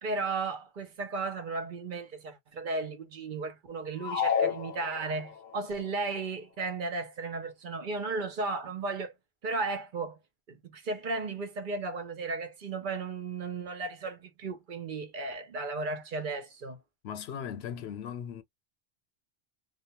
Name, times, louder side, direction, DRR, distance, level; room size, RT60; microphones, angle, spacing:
voice 1, 0.0-9.1 9.4-10.2 10.5-16.8, right 3 dB, 55° right, 0.8 m, -35 dB
sound 1, 4.0-5.5, left 7 dB, 50° left, 0.7 m, -30 dB
voice 2, 17.0-18.4, left 8 dB, 80° left, 0.8 m, -38 dB
2.4 x 2.2 x 2.7 m
omnidirectional pair, 1.1 m